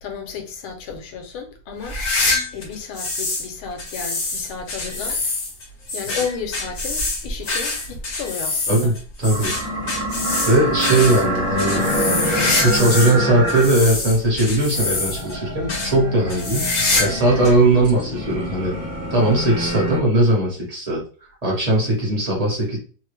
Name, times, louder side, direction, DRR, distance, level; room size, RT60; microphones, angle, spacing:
voice 1, 0.0-2.0 2.5-5.2 5.9-8.9 17.3-17.7, left 6 dB, 85° left, 1.5 m, -32 dB
sound 1, 1.8-3.5 3.8-13.2 13.5-15.3 15.7-15.9 16.3-17.2 17.4-17.5 18.3-18.4 19.7-19.8, left 3 dB, 55° left, 0.8 m, -25 dB
voice 2, 9.2-9.5 10.4-11.8 12.2-16.7 17.0-18.7 19.1-21.0 21.4-22.8, right 2 dB, 30° right, 0.7 m, -19 dB
sound 2, 9.3-20.0, equal, 75° right, 0.4 m, -26 dB
3.4 x 2.1 x 3.2 m
omnidirectional pair, 2.2 m